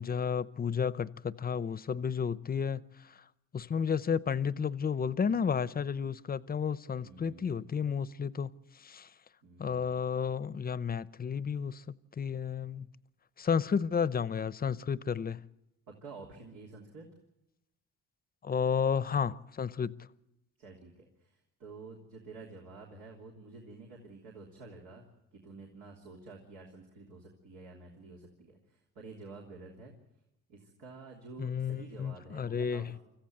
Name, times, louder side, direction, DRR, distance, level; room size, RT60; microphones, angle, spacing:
voice 1, 0.0-3.2 3.5-9.1 9.6-11.8 12.2-12.9 13.4-15.4 18.4-20.0 31.4-32.9, left 6 dB, 30° left, 0.7 m, -32 dB
voice 2, 7.0-7.8 9.4-10.0 15.9-17.1 20.6-25.0 25.3-29.9 30.5-33.0, right 3 dB, 85° right, 3.3 m, -50 dB
25.0 x 14.5 x 7.8 m
cardioid pair, 90°, 30 cm